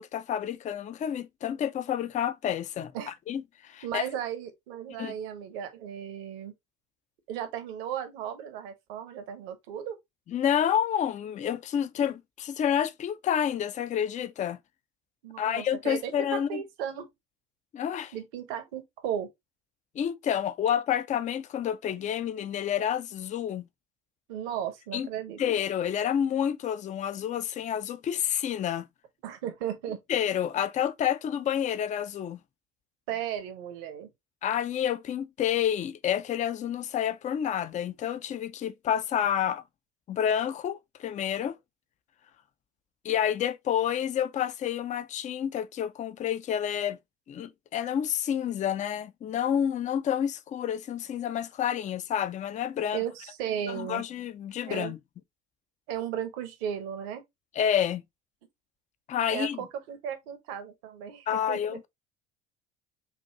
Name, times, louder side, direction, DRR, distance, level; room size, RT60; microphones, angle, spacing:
voice 1, 0.0-2.9 3.3-4.0 5.0-5.1 10.3-14.6 15.4-16.6 17.7-18.1 20.0-23.7 24.9-25.1 25.4-28.8 30.1-32.4 34.4-39.6 40.1-41.6 43.0-47.0 47.3-53.0 53.7-55.0 57.6-58.0 59.1-59.6 61.3-61.9, left 9 dB, 20° left, 0.4 m, -29 dB
voice 2, 3.8-6.5 7.3-10.0 15.2-17.1 18.1-19.3 24.3-25.4 29.2-30.0 33.1-34.1 52.9-54.0 54.6-54.9 55.9-57.2 59.3-61.8, right 9 dB, 60° right, 1.1 m, -35 dB
5.4 x 2.5 x 2.9 m
figure-of-eight pair, 70°, 34 cm